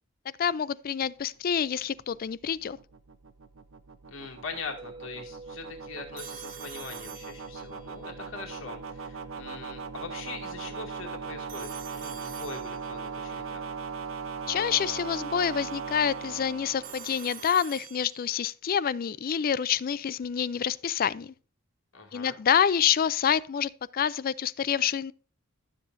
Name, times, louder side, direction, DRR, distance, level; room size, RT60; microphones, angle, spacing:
voice 1, 0.4-2.8 14.5-21.3 22.1-25.1, left 8 dB, 45° left, 0.4 m, -27 dB
sound 1, 1.5-17.7, right 5 dB, 75° right, 0.8 m, -39 dB
voice 2, 4.1-13.6 21.9-22.4, left 4 dB, 70° left, 2.3 m, -42 dB
sound 2, 4.8-14.9, right 3 dB, 25° right, 1.3 m, -51 dB
Telephone, 6.2-7.9 11.5-13.2 16.8-18.5, right 9 dB, 40° right, 1.2 m, -46 dB
12.5 x 7.5 x 2.6 m
head